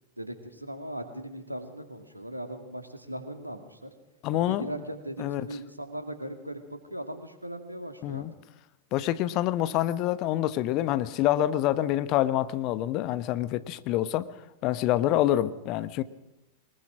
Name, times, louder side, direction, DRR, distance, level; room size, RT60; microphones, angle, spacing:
voice 1, 0.2-3.9 4.3-8.2, right 1 dB, 85° right, 2.5 m, -39 dB
voice 2, 4.2-4.7 5.2-5.5 8.0-8.3 8.9-14.3 14.6-16.0, left 13 dB, 40° left, 1.1 m, -26 dB
23.0 x 21.0 x 6.1 m
figure-of-eight pair, 90°, 0 cm